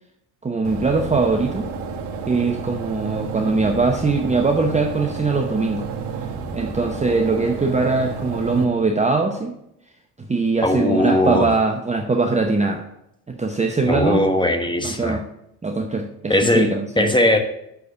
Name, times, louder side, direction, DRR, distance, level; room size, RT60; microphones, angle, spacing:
voice 1, 0.4-1.7 2.3-5.9 6.5-9.5 10.2-12.8 13.3-14.2 14.8-15.2 15.6-17.1, right 3 dB, 15° right, 3 dB, 0.8 m, -21 dB
sound 1, 0.6-8.6, right 5 dB, 60° right, 1.5 m, -31 dB
voice 2, 10.6-11.5 13.8-15.2 16.3-17.4, left 1 dB, 10° left, 5 dB, 1.2 m, -19 dB
6.7 x 4.7 x 6.4 m, 0.80 s
hypercardioid pair, 65°, 47 cm